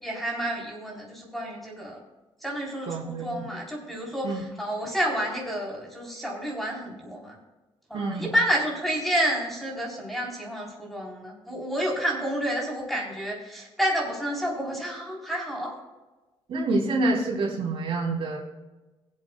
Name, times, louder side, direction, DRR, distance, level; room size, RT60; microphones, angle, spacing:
voice 1, 0.0-2.0 2.4-7.4 7.9-15.7, equal, ahead, -3 dB, 4.0 m, -30 dB
voice 2, 2.9-3.5 4.2-4.4 7.9-8.3 16.5-18.4, right 2 dB, 65° right, -2 dB, 3.3 m, -27 dB
23.5 x 8.0 x 2.4 m, 1.1 s
cardioid pair, 135°, 10 cm